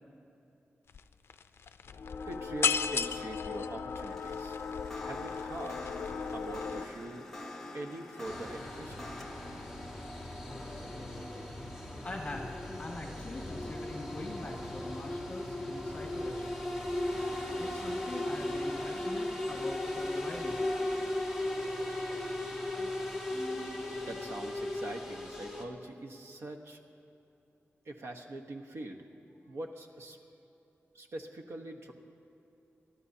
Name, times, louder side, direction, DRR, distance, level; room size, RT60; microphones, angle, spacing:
sound 1, 0.9-1.0 1.3-6.9, left 6 dB, 65° left, 0.4 m, -35 dB
voice 1, 2.3-4.6 5.0-5.9 6.3-7.3 7.7-9.1 23.9-26.8 27.8-29.0 29.5-30.2 30.9-31.9, right 2 dB, 80° right, 3 dB, 1.1 m, -43 dB
sound 2, 4.0-13.3, left 1 dB, 10° left, 0.9 m, -47 dB
sound 3, 8.3-25.6, left 1 dB, 10° right, 1.5 m, -37 dB
voice 2, 12.0-16.6 17.6-20.7, left 2 dB, 30° left, 0 dB, 1.9 m, -43 dB
29.0 x 13.0 x 2.8 m, 2.9 s
wide cardioid pair, 170°, 4 cm